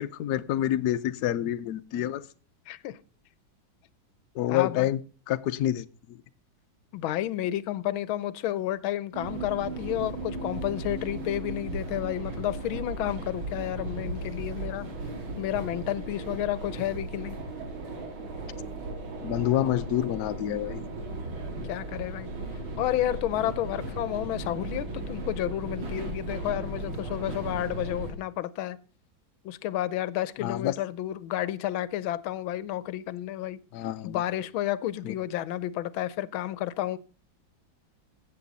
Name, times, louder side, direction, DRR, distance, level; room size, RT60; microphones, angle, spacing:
voice 1, 0.0-2.2 4.3-5.0 5.3-6.2 19.2-20.9 30.4-30.7 33.7-34.2 35.0-35.1, left 12 dB, 65° left, 1.0 m, -28 dB
voice 2, 2.7-3.0 4.5-4.9 6.9-14.9 15.4-17.4 21.7-22.3 22.8-28.8 29.4-33.6 34.0-37.0, left 13 dB, 80° left, 1.5 m, -31 dB
sound 1, 9.1-28.1, right 2 dB, 75° right, 3.0 m, -36 dB
15.5 x 7.8 x 4.0 m
omnidirectional pair, 2.2 m